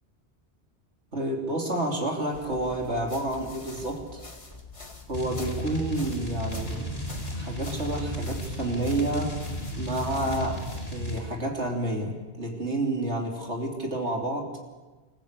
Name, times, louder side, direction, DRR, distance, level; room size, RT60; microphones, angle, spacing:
voice 1, 1.1-4.2 5.1-6.9 7.3-9.3 9.8-10.6 10.9-14.5, right 1 dB, 90° right, 1 dB, 3.6 m, -29 dB
sound 1, 2.3-11.0, left 3 dB, 30° left, 1.8 m, -44 dB
sound 2, 5.1-11.3, right 1 dB, 65° left, 4.7 m, -34 dB
27.0 x 15.0 x 8.3 m, 1.2 s
omnidirectional pair, 1.1 m